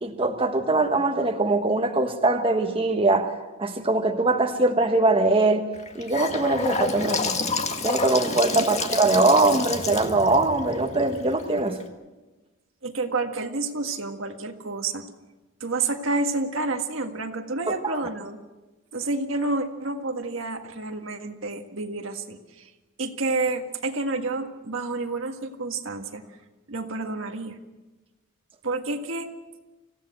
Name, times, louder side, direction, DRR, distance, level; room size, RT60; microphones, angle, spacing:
voice 1, 0.0-3.3 3.6-5.6 5.9-7.4 7.8-11.8 17.7-18.0, right 2 dB, 25° right, 4 dB, 1.3 m, -22 dB
Gurgling / Sink (filling or washing) / Bathtub (filling or washing), 5.7-11.8, left 3 dB, 35° left, 1.7 m, -29 dB
voice 2, 12.8-15.0 15.6-18.4 18.9-22.7 23.0-26.2 26.7-27.6 28.6-29.3, right 3 dB, 70° right, 5 dB, 1.8 m, -29 dB
25.5 x 16.0 x 7.8 m, 1.2 s
head